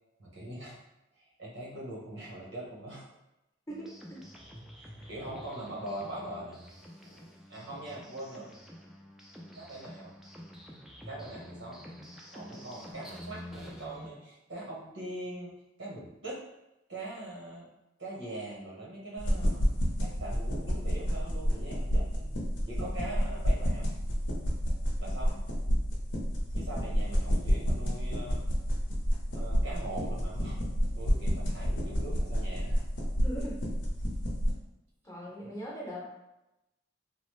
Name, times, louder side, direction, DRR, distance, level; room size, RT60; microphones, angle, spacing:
voice 1, 0.2-0.8 1.2-3.1 4.7-6.6 7.0-8.5 9.5-10.2 11.1-11.8 12.3-15.5 15.8-16.4 16.9-17.7 18.0-19.7 20.0-22.4 22.7-23.9 25.0-25.4 26.5-28.4 29.3-30.6 30.9-32.8, right 1 dB, 90° right, -4 dB, 1.0 m, -42 dB
voice 2, 3.7-4.2 33.2-33.6 35.0-36.1, equal, 15° left, -5 dB, 0.7 m, -40 dB
sound 1, 3.7-14.1, equal, ahead, 0.3 m, -48 dB
sound 2, 19.2-34.5, equal, 85° left, 0.7 m, -30 dB
3.0 x 2.0 x 3.1 m, 0.94 s
head